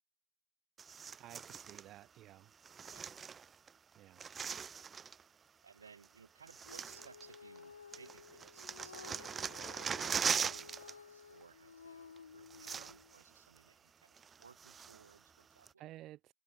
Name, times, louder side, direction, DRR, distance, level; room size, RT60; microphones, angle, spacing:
sound 1, 0.8-1.9 2.6-3.7 4.0-5.2 6.0-6.1 6.5-7.6 7.9-10.9 11.2-11.4 12.2-12.3 12.5-13.2 13.6-13.7 14.2-15.1 15.7-15.8, right 6 dB, 20° right, 0.7 m, -40 dB
voice 1, 1.2-2.5 4.0-4.3 15.8-16.3, right 15 dB, 35° right, 2.2 m, -53 dB
voice 2, 5.6-15.8, right 6 dB, 70° right, 6.1 m, -61 dB
Female singing, 6.6-13.1, left 6 dB, 70° left, 0.5 m, -55 dB
figure-of-eight pair, 90°, 0 cm